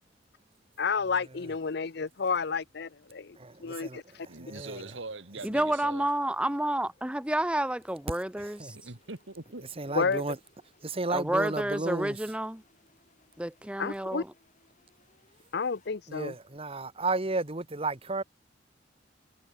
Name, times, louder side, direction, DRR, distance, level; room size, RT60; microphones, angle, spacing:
voice 1, 0.8-4.3 9.9-10.2 13.8-14.2 15.5-16.3, left 5 dB, 60° left, 0.7 m, -31 dB
sound 1, 2.7-15.9, left 3 dB, 40° left, 7.9 m, -68 dB
voice 2, 3.4-4.0 4.4-4.8 8.4-8.8 9.8-10.4 10.8-12.2 16.1-18.2, right 3 dB, 30° right, 1.3 m, -33 dB
voice 3, 4.3-6.1 8.7-9.7, right 3 dB, 80° right, 2.3 m, -42 dB
voice 4, 5.4-8.7 11.1-12.6 13.4-14.2, right 1 dB, 5° right, 0.9 m, -30 dB
head